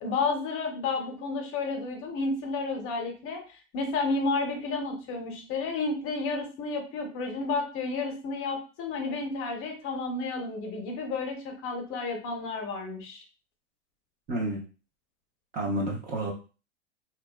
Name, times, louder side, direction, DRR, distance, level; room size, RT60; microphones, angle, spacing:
voice 1, 0.0-13.2, left 3 dB, 35° left, 3 dB, 0.7 m, -31 dB
voice 2, 14.3-14.6 15.5-16.3, right 1 dB, 25° right, 0 dB, 0.5 m, -29 dB
2.5 x 2.2 x 2.2 m, 0.34 s
hypercardioid pair, 120°, 36 cm